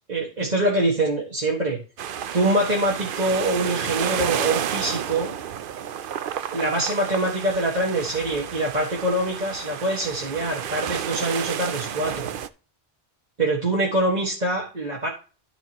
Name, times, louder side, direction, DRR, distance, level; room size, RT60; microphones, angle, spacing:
voice 1, 0.1-1.8 2.3-5.3 6.5-12.3 13.4-15.1, right 1 dB, 40° right, -4 dB, 1.9 m, -24 dB
sound 1, 2.0-12.5, right 9 dB, 60° right, 0.7 m, -31 dB
13.5 x 5.4 x 3.0 m, 0.34 s
omnidirectional pair, 1.1 m